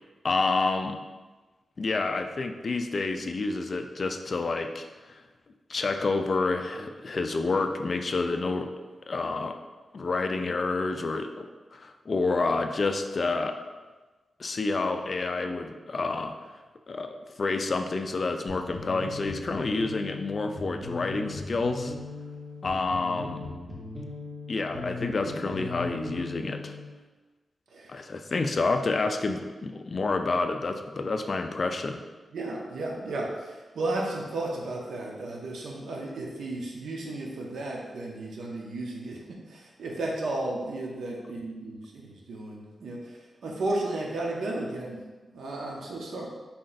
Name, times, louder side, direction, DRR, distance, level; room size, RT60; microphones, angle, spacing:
voice 1, 0.2-1.0 1.8-5.2 5.7-8.7 9.1-9.5 9.9-13.6 14.4-16.4 16.9-21.9 22.6-23.5 24.5-26.8 27.9-32.0, left 3 dB, 45° left, 6 dB, 0.3 m, -29 dB
sound 1, 18.5-26.9, left 2 dB, 25° right, 0.9 m, -38 dB
voice 2, 32.3-45.0 45.3-46.3, right 2 dB, 85° right, -2 dB, 0.6 m, -34 dB
4.1 x 2.5 x 3.9 m, 1.3 s
wide cardioid pair, 115°, 0 cm